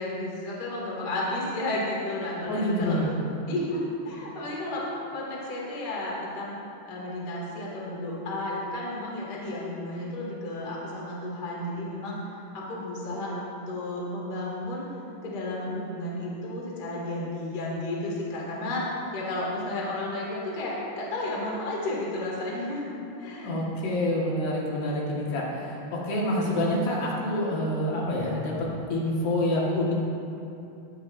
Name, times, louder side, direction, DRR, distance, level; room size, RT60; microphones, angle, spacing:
voice 1, 0.0-3.0 3.5-4.8 5.1-6.6 6.8-14.8 15.2-18.8 19.1-23.5, left 1 dB, 30° left, -5 dB, 2.1 m, -32 dB
voice 2, 2.5-3.1 23.4-29.9, left 1 dB, 70° left, -4 dB, 3.6 m, -27 dB
20.5 x 11.0 x 2.7 m, 2.8 s
omnidirectional pair, 5.0 m